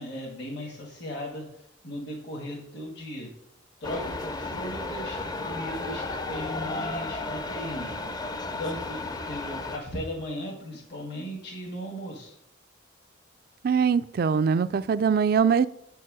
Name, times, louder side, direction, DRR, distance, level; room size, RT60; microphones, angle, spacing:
voice 1, 0.0-3.3 3.8-7.9 8.6-12.3, equal, 60° left, -1 dB, 1.7 m, -37 dB
sound 1, 3.8-9.8, left 2 dB, 20° left, 0.5 m, -33 dB
voice 2, 13.6-15.7, right 6 dB, 50° right, 15 dB, 0.3 m, -22 dB
8.4 x 4.6 x 6.1 m, 0.80 s
head